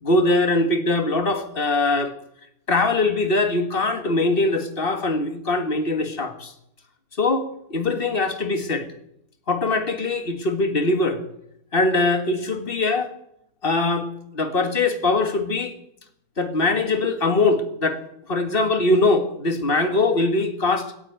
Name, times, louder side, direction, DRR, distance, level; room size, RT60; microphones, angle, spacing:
voice 1, 0.0-2.1 2.7-6.5 7.2-8.9 9.5-11.2 11.7-13.1 13.6-15.7 16.4-18.0 18.3-20.9, left 2 dB, 40° left, 8 dB, 1.9 m, -22 dB
17.5 x 8.5 x 8.9 m, 0.75 s
omnidirectional pair, 1.6 m